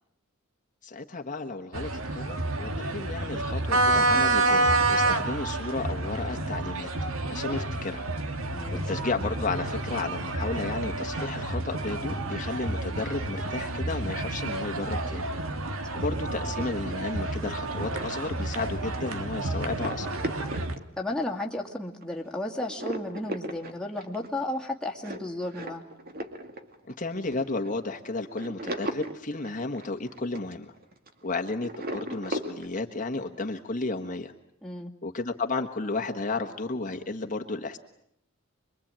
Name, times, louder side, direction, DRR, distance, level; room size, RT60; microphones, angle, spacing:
voice 1, 0.8-6.9 7.3-8.1 8.9-15.3 15.9-20.1 26.9-30.7 31.2-34.3 35.0-37.8, left 3 dB, 40° left, 4 dB, 1.5 m, -33 dB
sound 1, 1.7-20.8, right 2 dB, 70° right, 2.0 m, -29 dB
voice 2, 8.5-8.9 15.9-16.0 21.0-25.8 34.6-34.9, left 1 dB, 5° left, -1 dB, 2.4 m, -33 dB
sound 2, 17.7-21.5 22.0-22.3 22.6-31.3 31.6-32.7, right 1 dB, 45° right, 2.4 m, -37 dB
26.5 x 23.0 x 8.9 m, 0.75 s
head